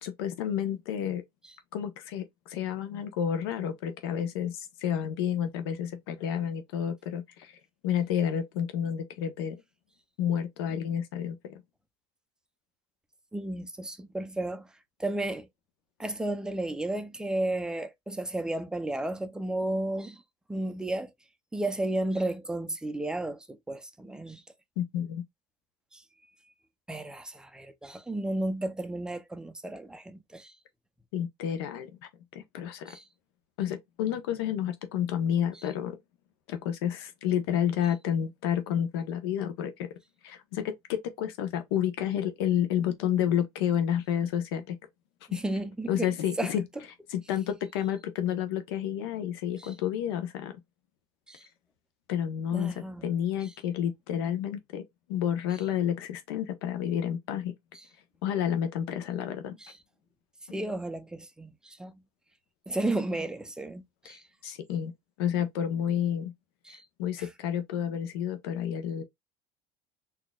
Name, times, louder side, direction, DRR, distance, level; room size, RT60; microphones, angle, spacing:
voice 1, 0.0-1.2 1.7-7.5 7.8-9.6 10.2-11.6 24.8-25.2 31.1-32.0 32.3-32.9 33.6-36.0 36.5-39.9 40.2-44.8 45.9-46.6 47.1-50.6 52.1-52.7 53.0-54.8 55.1-57.5 58.2-59.6 64.0-64.9 65.2-66.3 67.0-69.0, left 9 dB, 90° left, 1.0 m, -30 dB
voice 2, 13.3-14.7 15.0-15.5 16.0-20.2 20.5-21.1 21.5-24.4 25.9-26.0 26.9-30.5 32.9-33.0 45.3-46.1 46.4-46.5 49.6-49.7 51.3-51.4 52.5-53.1 59.6-59.8 60.5-62.0 62.7-64.2 66.6-66.8, right 1 dB, 5° right, 0.5 m, -33 dB
4.2 x 2.8 x 2.3 m
supercardioid pair, 135°, 12 cm